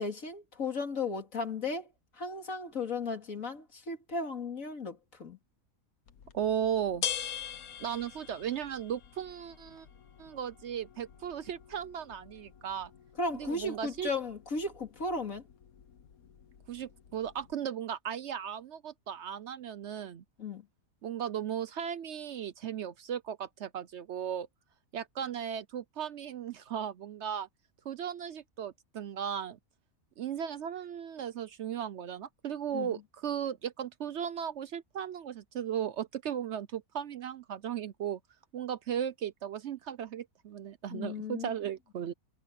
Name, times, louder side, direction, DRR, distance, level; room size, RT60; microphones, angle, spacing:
voice 1, 0.0-5.4 13.2-15.4 20.4-20.7 32.7-33.0 40.9-41.5, left 3 dB, 70° left, 2.9 m, -35 dB
sound 1, 6.1-17.5, left 9 dB, 90° left, 1.6 m, -44 dB
voice 2, 6.3-7.1 7.8-9.9 10.2-12.9 13.3-14.1 16.7-20.2 21.0-24.5 24.9-27.5 27.9-29.6 30.2-38.2 38.5-42.1, right 9 dB, 60° right, 0.8 m, -36 dB
omnidirectional pair, 1.5 m